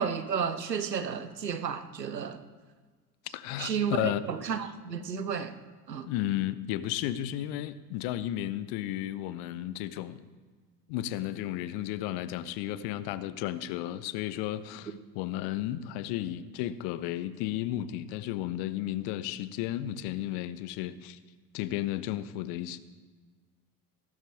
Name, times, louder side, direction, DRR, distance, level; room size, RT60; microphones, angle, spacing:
voice 1, 0.0-2.4 3.6-5.6 5.9-6.1, right 7 dB, 85° right, 0.9 m, -32 dB
voice 2, 3.3-4.2 6.1-10.2 10.9-21.2 21.5-22.8, left 13 dB, 50° left, 0.9 m, -33 dB
17.5 x 12.5 x 3.6 m
figure-of-eight pair, 70°, 48 cm